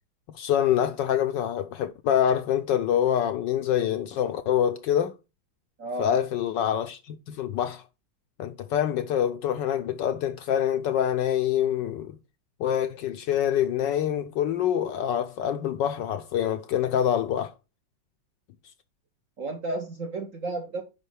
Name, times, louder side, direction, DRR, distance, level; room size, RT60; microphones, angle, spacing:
voice 1, 0.3-5.1 6.0-7.8 8.4-12.2 12.6-17.5, left 10 dB, 75° left, 1.1 m, -25 dB
voice 2, 5.8-6.1 19.4-20.8, right 2 dB, 60° right, 0.9 m, -32 dB
9.9 x 5.2 x 3.3 m
omnidirectional pair, 2.3 m